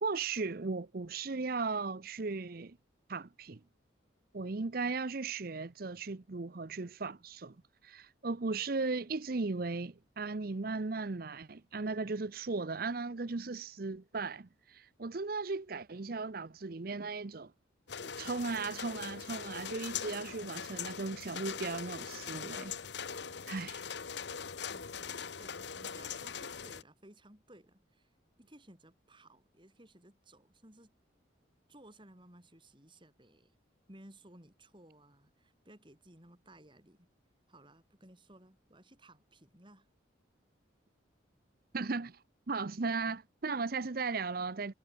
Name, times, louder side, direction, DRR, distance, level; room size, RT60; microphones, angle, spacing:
voice 1, 0.0-2.8 3.1-3.6 4.3-7.6 7.8-17.5 18.2-22.7 23.5-23.8 41.7-44.7, right 4 dB, 50° right, 0.7 m, -37 dB
sound 1, 17.9-26.8, left 7 dB, 65° left, 1.0 m, -41 dB
voice 2, 24.7-25.1 25.4-30.9 31.7-33.5 33.9-37.1 37.5-39.9, right 1 dB, 25° right, 5.1 m, -58 dB
head